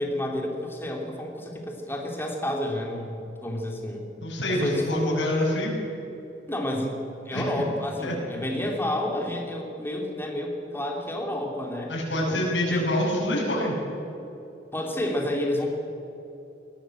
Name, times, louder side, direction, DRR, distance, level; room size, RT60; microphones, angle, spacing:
voice 1, 0.0-4.0 4.5-5.2 6.5-11.9 12.3-12.4 12.7-12.9 14.7-15.7, left 1 dB, 15° left, 0 dB, 3.2 m, -30 dB
voice 2, 4.2-5.7 7.3-7.5 8.0-8.2 11.9-13.7, left 1 dB, 85° left, -5 dB, 6.0 m, -26 dB
21.5 x 16.5 x 7.9 m, 2.9 s
head